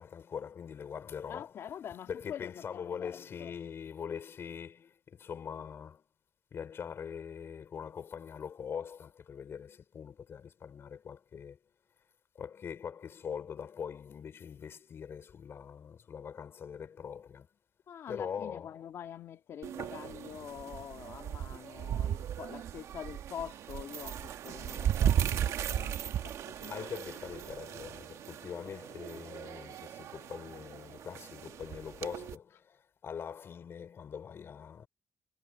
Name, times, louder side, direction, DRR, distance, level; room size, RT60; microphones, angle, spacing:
voice 1, 0.0-1.5 2.1-6.0 6.5-11.6 12.4-17.5 18.1-18.8 26.7-34.9, left 7 dB, 55° left, 5.3 m, -42 dB
voice 2, 1.3-3.5 17.9-26.9, left 9 dB, 70° left, 1.9 m, -45 dB
sound 1, 19.6-32.4, right 10 dB, 80° right, 1.1 m, -36 dB
cardioid pair, 115°, 5 cm